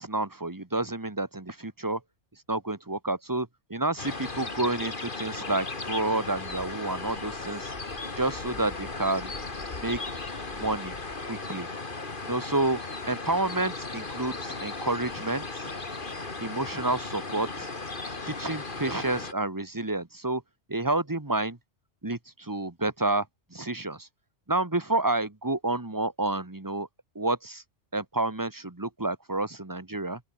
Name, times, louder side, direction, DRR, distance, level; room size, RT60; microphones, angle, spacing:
voice 1, 0.0-2.0 2.5-7.7 8.2-9.3 9.8-10.2 10.5-10.9 11.3-11.7 12.2-12.8 13.1-15.7 16.4-17.7 18.2-20.4 20.7-21.6 22.0-23.2 23.5-24.1 24.5-26.9 27.1-27.6 27.9-30.2, right 2 dB, 15° right, 1.6 m, -29 dB
sound 1, 4.0-19.3, left 3 dB, 50° left, 2.5 m, -36 dB
open air
omnidirectional pair, 1.2 m